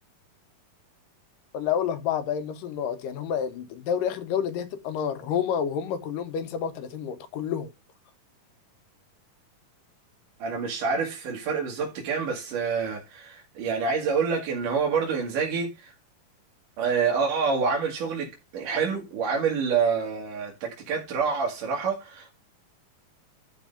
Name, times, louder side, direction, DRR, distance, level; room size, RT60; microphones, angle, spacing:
voice 1, 1.5-7.7, left 8 dB, 75° left, 2.6 m, -29 dB
voice 2, 10.4-15.9 16.8-22.3, right 5 dB, 70° right, 3.3 m, -27 dB
12.0 x 4.4 x 5.1 m
omnidirectional pair, 4.0 m